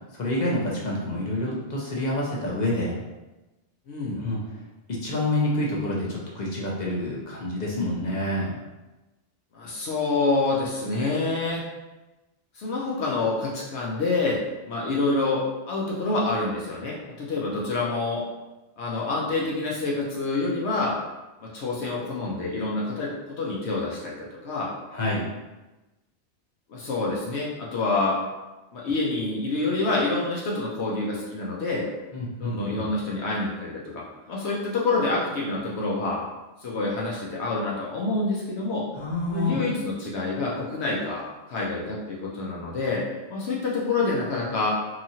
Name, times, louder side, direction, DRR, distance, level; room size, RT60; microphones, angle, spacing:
voice 1, 0.1-3.0 4.2-4.4 4.9-8.6 24.9-25.3 32.1-32.8 38.9-39.6, left 1 dB, 50° left, -4 dB, 0.6 m, -27 dB
voice 2, 3.9-4.2 9.5-11.6 12.5-14.4 14.7-18.2 18.8-21.0 21.4-23.1 23.4-24.7 26.7-28.2 28.7-31.9 32.4-36.2 36.6-38.8 39.3-41.2 41.5-43.0 43.3-44.8, left 3 dB, 70° left, -4 dB, 0.9 m, -27 dB
2.9 x 2.4 x 2.7 m, 1.1 s
omnidirectional pair, 1.2 m